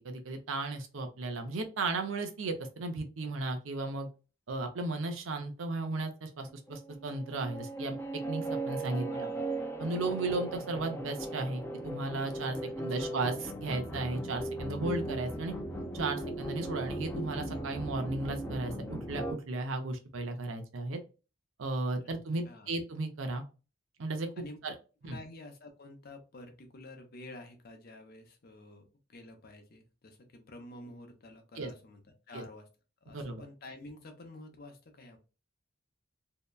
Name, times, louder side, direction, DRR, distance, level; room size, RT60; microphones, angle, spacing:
voice 1, 0.0-4.1 4.5-9.1 9.8-13.3 13.6-15.5 15.9-21.0 21.6-23.4 24.0-24.3 24.6-24.7 25.0-25.2 31.6-31.7 32.3-32.4 33.1-33.4, right 2 dB, 80° right, 6 dB, 0.6 m, -35 dB
sound 1, 6.5-19.3, right 2 dB, 10° left, 0.5 m, -38 dB
voice 2, 9.1-9.4 12.6-13.2 22.0-22.8 24.4-24.6 25.0-32.0 32.3-32.7 33.0-35.2, left 2 dB, 50° left, 5 dB, 0.6 m, -50 dB
2.7 x 2.1 x 2.2 m, 0.33 s
head